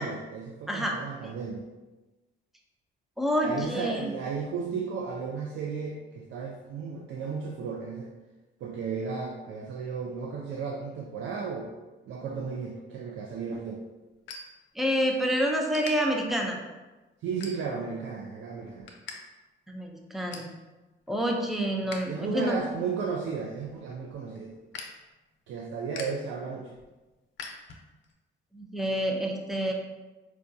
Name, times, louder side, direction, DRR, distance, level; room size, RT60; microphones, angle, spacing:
voice 1, 0.0-1.6 3.4-8.1 8.6-11.7 12.1-13.8 17.2-18.9 22.1-24.6 25.5-26.7, right 5 dB, 80° right, 0 dB, 0.4 m, -34 dB
voice 2, 0.7-1.0 3.2-4.1 14.8-16.6 19.7-20.5 21.1-22.6 28.5-29.7, equal, ahead, 1 dB, 0.4 m, -28 dB
sound 1, 13.1-15.2 15.5-15.9 16.5-16.7 17.3-18.0 18.3-19.2 19.4-19.5 19.9-20.6 21.0-22.0 22.4-28.1, left 4 dB, 75° left, 0.6 m, -45 dB
4.6 x 2.2 x 2.6 m, 1.2 s
cardioid pair, 130°, 20 cm